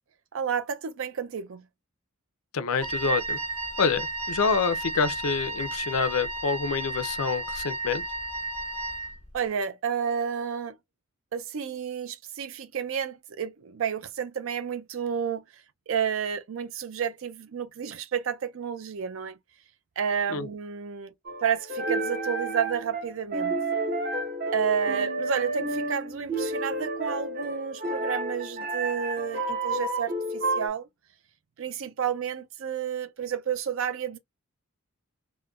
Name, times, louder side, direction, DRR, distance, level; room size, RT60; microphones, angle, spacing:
voice 1, 0.3-1.6 9.3-10.7 11.3-15.4 15.9-19.4 20.0-21.1 21.4-23.5 24.5-30.9 31.6-34.2, right 7 dB, 65° right, 0.4 m, -30 dB
voice 2, 2.5-3.4 3.8-8.0 20.3-20.5, left 5 dB, 75° left, 0.5 m, -27 dB
Wind instrument woodwind instrument, 2.8-9.2, right 2 dB, 90° right, 1.2 m, -33 dB
sound 1, 21.2-30.7, right 2 dB, 40° right, 0.9 m, -30 dB
3.7 x 2.1 x 2.3 m
head